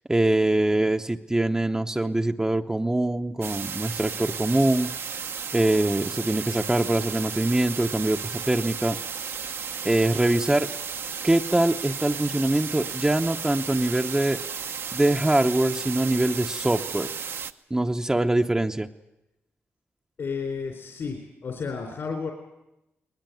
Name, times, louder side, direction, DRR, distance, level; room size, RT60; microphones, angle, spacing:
voice 1, 0.1-4.9 5.5-9.0 9.8-10.7 11.2-14.4 14.9-17.1 17.7-18.9, right 1 dB, 15° right, 4 dB, 0.8 m, -23 dB
sound 1, 3.4-17.5, right 6 dB, 65° right, 0.9 m, -34 dB
voice 2, 20.2-22.3, left 5 dB, 65° left, 3 dB, 3.9 m, -32 dB
21.5 x 20.0 x 9.3 m, 0.92 s
cardioid pair, 80°, 4 cm